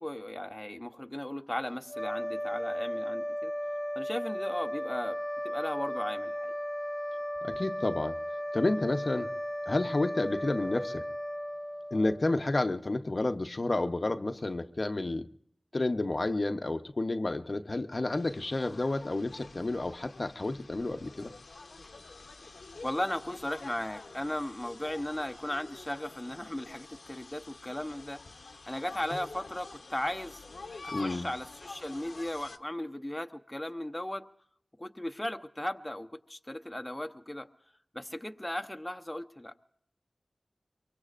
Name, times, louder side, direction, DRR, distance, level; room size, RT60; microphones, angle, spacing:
voice 1, 0.0-3.5 4.0-5.2 5.4-6.5 22.8-28.2 28.7-30.4 30.8-34.2 34.8-37.5 37.9-39.5, left 1 dB, 15° left, 7 dB, 0.8 m, -36 dB
sound 1, 1.9-12.5, equal, 10° right, 1.3 m, -35 dB
voice 2, 7.4-8.2 8.5-9.3 9.7-11.0 11.9-15.3 15.7-21.3 30.9-31.3, left 2 dB, 50° left, 8 dB, 0.7 m, -30 dB
sound 2, 18.1-32.6, left 3 dB, 85° left, 0.9 m, -48 dB
23.5 x 23.5 x 2.5 m, 0.69 s
wide cardioid pair, 65°, 0 cm